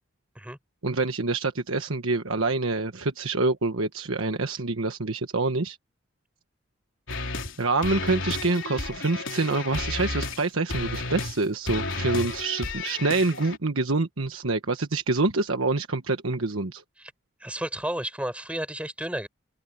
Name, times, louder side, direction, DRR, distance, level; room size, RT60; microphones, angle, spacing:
voice 1, 0.8-5.8 7.6-16.8, right 3 dB, 85° right, 1.3 m, -26 dB
sound 1, 7.1-7.6 7.8-10.4 10.7-11.4 11.7-13.6, left 2 dB, 70° left, 3.8 m, -32 dB
voice 2, 17.4-19.3, right 1 dB, 5° right, 4.3 m, -32 dB
open air
head